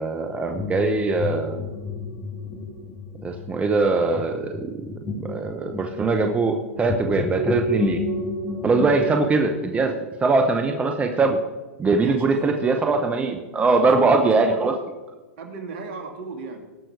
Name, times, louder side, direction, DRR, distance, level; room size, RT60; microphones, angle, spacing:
voice 1, 0.0-1.7 3.2-4.9 5.1-8.1 8.6-9.9 10.2-11.4 11.8-14.7, right 3 dB, 15° right, 5 dB, 0.9 m, -22 dB
sound 1, 0.6-9.1, left 2 dB, 20° left, 2.0 m, -30 dB
voice 2, 8.8-9.1 12.0-12.5 13.8-14.7 15.4-16.6, right 4 dB, 55° right, 4 dB, 2.3 m, -35 dB
18.5 x 6.2 x 4.7 m, 1.2 s
hypercardioid pair, 105°, 8 cm